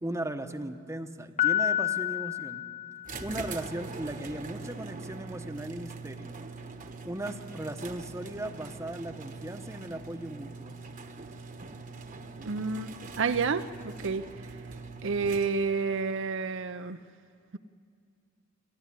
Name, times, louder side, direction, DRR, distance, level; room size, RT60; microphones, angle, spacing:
voice 1, 0.0-2.6 3.2-6.3 7.0-10.8, right 1 dB, 15° right, 8 dB, 0.9 m, -37 dB
Piano, 1.4-3.5, left 12 dB, 35° left, 0.8 m, -29 dB
sound 1, 3.0-15.8, right 4 dB, 40° right, 1.1 m, -43 dB
voice 2, 12.5-14.3 15.0-17.0, right 5 dB, 60° right, 9 dB, 0.6 m, -30 dB
28.5 x 12.5 x 10.0 m, 2.4 s
head